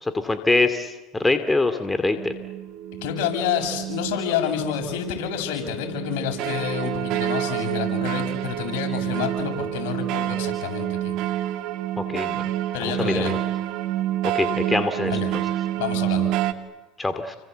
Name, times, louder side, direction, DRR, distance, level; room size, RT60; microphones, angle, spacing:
voice 1, 0.0-2.3 12.0-12.5 12.8-13.4 14.3-15.1 17.0-17.4, left 2 dB, 10° left, 8 dB, 2.5 m, -24 dB
sound 1, 2.2-16.5, right 13 dB, 65° right, 2.0 m, -28 dB
voice 2, 3.0-11.1 12.7-13.3 15.1-15.3 15.7-16.3, left 8 dB, 75° left, 3 dB, 7.2 m, -28 dB
30.0 x 24.5 x 8.1 m, 1.2 s
hypercardioid pair, 90°, 0 cm